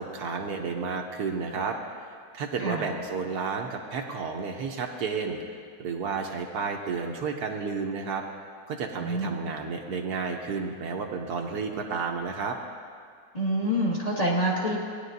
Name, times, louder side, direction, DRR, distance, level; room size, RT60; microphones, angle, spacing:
voice 1, 0.0-1.8 2.3-8.2 8.7-12.6, right 5 dB, 70° right, 2 dB, 1.3 m, -31 dB
voice 2, 9.0-9.3 13.3-14.8, equal, 25° left, -5 dB, 1.7 m, -26 dB
18.5 x 10.0 x 2.6 m, 2.1 s
omnidirectional pair, 1.8 m